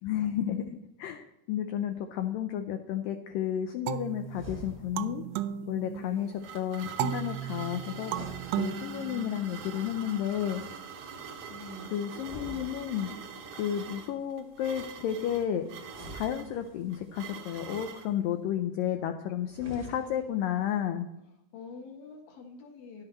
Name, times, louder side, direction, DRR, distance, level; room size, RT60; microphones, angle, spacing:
voice 1, 0.0-0.7 1.0-5.2 5.7-8.1 8.6-10.6 11.9-13.1 13.5-15.7 16.1-21.1, left 10 dB, 85° left, 7 dB, 2.0 m, -32 dB
sound 1, 3.9-6.4 7.0-9.8, right 11 dB, 85° right, 2.6 m, -35 dB
sound 2, 4.3-5.2 7.9-9.3 12.1-13.3 15.8-17.1 19.4-20.4, equal, 30° right, 1.0 m, -47 dB
voice 2, 6.0-6.4 11.5-11.9 21.5-23.0, left 2 dB, 65° left, 2 dB, 3.0 m, -45 dB
sound 3, 6.0-18.1, right 6 dB, 65° right, 2.0 m, -44 dB
11.0 x 7.8 x 4.3 m, 0.86 s
omnidirectional pair, 4.7 m